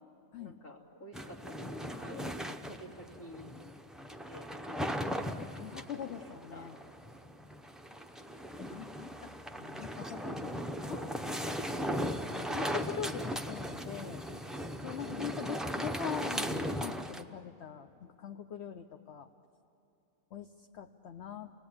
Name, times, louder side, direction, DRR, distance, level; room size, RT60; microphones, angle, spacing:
voice 1, 0.4-3.5 4.2-4.5 6.2-6.7 15.0-15.6, left 1 dB, 85° left, -2 dB, 3.3 m, -49 dB
sound 1, 1.1-17.2, equal, ahead, 0.3 m, -38 dB
voice 2, 5.5-6.8 8.7-9.3 9.6-11.1 11.9-14.3 14.8-19.3 20.3-21.5, left 8 dB, 55° left, 6 dB, 0.9 m, -43 dB
29.5 x 19.5 x 8.7 m, 2.7 s
omnidirectional pair, 1.6 m